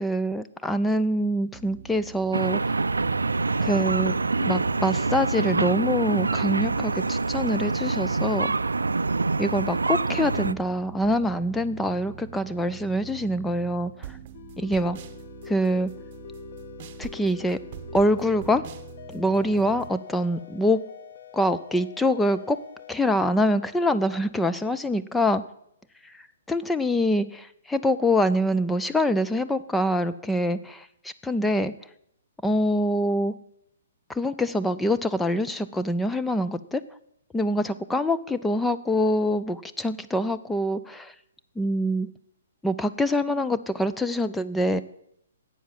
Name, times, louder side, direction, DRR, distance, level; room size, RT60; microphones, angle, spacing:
voice 1, 0.0-2.6 3.6-8.5 9.4-14.2 14.6-15.0 15.5-15.9 17.0-17.6 17.9-18.6 19.1-20.8 21.3-22.6 22.9-25.4 26.5-31.7 32.4-33.3 34.1-36.8 37.3-41.1 41.6-42.1 42.6-44.8, equal, 5° left, 10 dB, 0.5 m, -25 dB
sound 1, 1.5-19.9, right 9 dB, 40° right, 0.9 m, -44 dB
sound 2, 2.3-10.5, right 3 dB, 85° right, 0.4 m, -25 dB
sound 3, 14.3-24.7, left 8 dB, 55° left, 0.9 m, -45 dB
12.0 x 8.3 x 7.4 m, 0.76 s
figure-of-eight pair, 130°, 0 cm